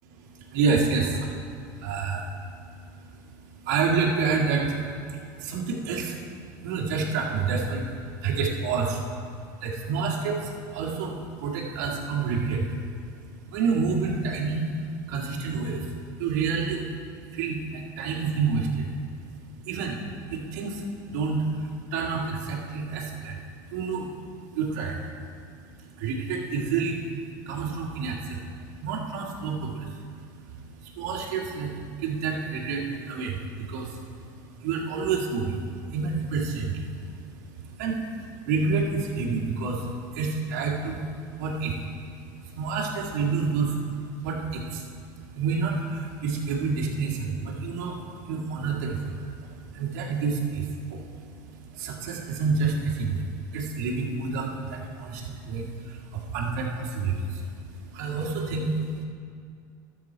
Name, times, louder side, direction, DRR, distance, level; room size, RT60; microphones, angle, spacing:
voice 1, 0.0-59.0, right 4 dB, 80° right, -3 dB, 1.8 m, -29 dB
12.5 x 7.2 x 4.5 m, 2.3 s
supercardioid pair, 115°, 9 cm